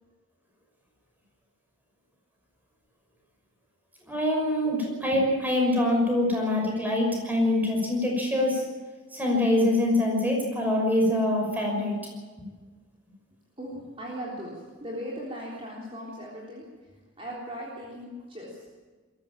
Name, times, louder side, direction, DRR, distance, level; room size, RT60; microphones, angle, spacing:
voice 1, 4.1-8.7 9.1-12.0, left 1 dB, 10° right, 0 dB, 6.0 m, -24 dB
voice 2, 13.6-14.5 14.8-16.6 17.2-18.5, equal, 25° right, -4 dB, 3.7 m, -38 dB
22.0 x 14.5 x 8.8 m, 1.4 s
head